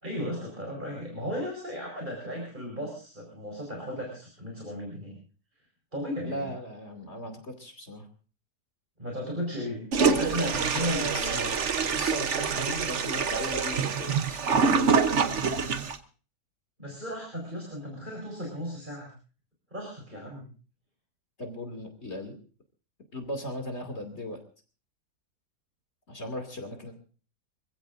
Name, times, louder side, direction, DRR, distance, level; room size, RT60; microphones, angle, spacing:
voice 1, 0.0-5.2 5.9-6.5 9.0-9.8 10.1-11.5 12.5-12.9 16.8-19.1 19.7-20.5, equal, 30° right, -1 dB, 5.0 m, -35 dB
voice 2, 6.2-8.1 10.8-11.5 11.9-15.3 15.6-15.9 21.4-22.4 23.1-24.4 26.1-26.9, equal, 45° left, 5 dB, 2.9 m, -37 dB
Toilet flush, 9.9-16.0, right 5 dB, 50° right, 1.2 m, -26 dB
26.0 x 15.5 x 2.6 m, 0.38 s
omnidirectional pair, 1.7 m